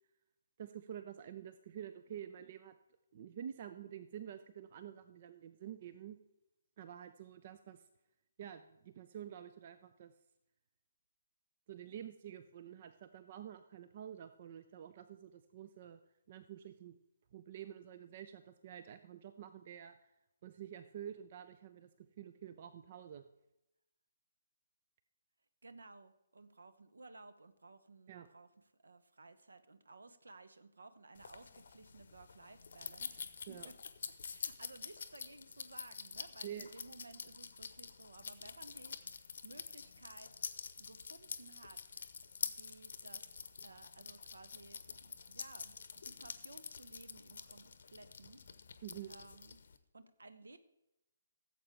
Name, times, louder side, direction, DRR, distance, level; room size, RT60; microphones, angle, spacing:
voice 1, 0.6-2.7 3.1-6.2 6.8-7.8 8.4-10.1 11.7-16.0 16.3-16.9 17.3-20.0 20.4-23.3 28.1-28.3 33.5-33.7 36.4-36.7 48.8-49.1, right 9 dB, 35° right, 11 dB, 0.5 m, -49 dB
voice 2, 25.6-28.5 28.8-33.8 34.2-40.3 40.8-42.1 42.4-45.7 46.0-48.4 49.1-49.6 49.9-50.6, right 3 dB, 65° right, 12 dB, 0.9 m, -57 dB
sound 1, 31.2-49.8, left 5 dB, 55° left, 0.8 m, -47 dB
16.5 x 7.7 x 3.5 m, 0.91 s
figure-of-eight pair, 135°, 0 cm